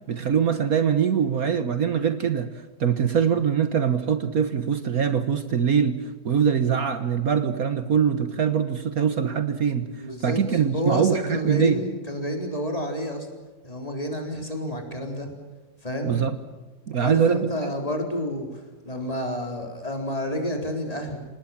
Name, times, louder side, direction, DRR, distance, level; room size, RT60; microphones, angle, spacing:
voice 1, 0.1-2.5 2.8-9.9 10.2-11.8 16.0-16.3 16.9-17.7, right 7 dB, 60° right, 10 dB, 1.6 m, -23 dB
voice 2, 10.0-13.3 13.6-15.3 15.8-16.2 17.0-21.2, equal, 20° left, 3 dB, 4.4 m, -29 dB
27.5 x 19.5 x 7.4 m, 1.2 s
omnidirectional pair, 1.8 m